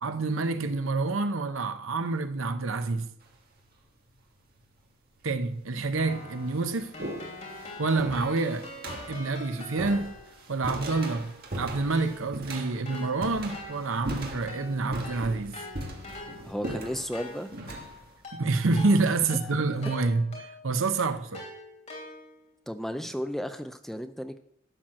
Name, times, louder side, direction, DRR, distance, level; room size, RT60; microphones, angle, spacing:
voice 1, 0.0-3.1 5.2-6.9 7.8-8.7 9.1-10.1 10.5-15.6 18.3-21.4, right 3 dB, 75° right, 0.8 m, -28 dB
sound 1, 3.2-3.6 4.6-4.7 5.5-5.6 6.0-19.5, right 1 dB, 45° right, 1.7 m, -40 dB
Keyboard (musical), 6.0-10.5 10.9-20.8 21.3-22.5, left 2 dB, 35° left, 3.1 m, -45 dB
voice 2, 16.4-17.5 19.5-19.6 22.7-24.4, equal, ahead, 0.4 m, -34 dB
12.0 x 4.4 x 7.5 m
head